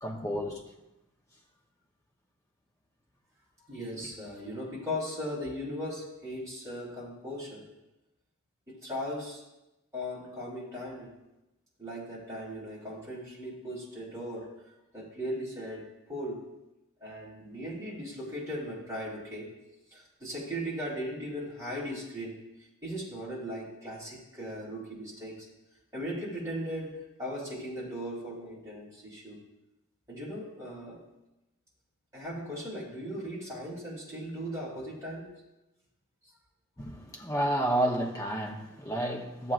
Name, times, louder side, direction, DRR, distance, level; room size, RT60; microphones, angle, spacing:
voice 1, 0.0-0.6 36.8-39.5, right 1 dB, 15° left, -1 dB, 0.9 m, -30 dB
voice 2, 3.7-7.7 8.7-9.4 9.9-11.1 11.8-14.5 14.9-15.8 16.1-16.4 17.0-19.5 19.9-22.3 22.8-25.5 25.9-29.4 30.1-31.0 32.1-35.3, equal, 15° right, -7 dB, 3.7 m, -38 dB
14.0 x 7.5 x 2.5 m, 0.95 s
head